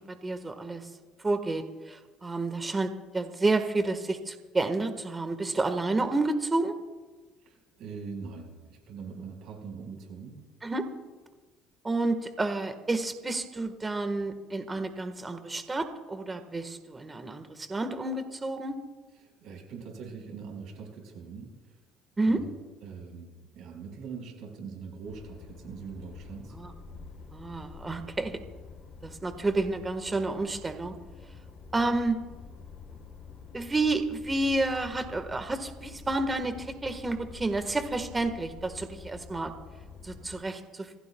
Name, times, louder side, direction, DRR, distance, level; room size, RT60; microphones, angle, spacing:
voice 1, 0.1-0.9 1.2-6.8 10.6-10.8 11.8-18.8 22.2-22.4 26.5-26.7 27.3-28.4 29.0-30.9 31.7-32.2 33.5-39.5 40.0-40.9, right 2 dB, 20° right, 8 dB, 1.5 m, -30 dB
voice 2, 7.4-10.4 19.2-21.8 22.2-22.5 22.8-26.6, right 5 dB, 65° right, 2 dB, 4.8 m, -42 dB
sound 1, 25.0-40.4, left 5 dB, 40° left, 3.6 m, -47 dB
26.5 x 16.5 x 2.3 m, 1.3 s
cardioid pair, 105°, 0 cm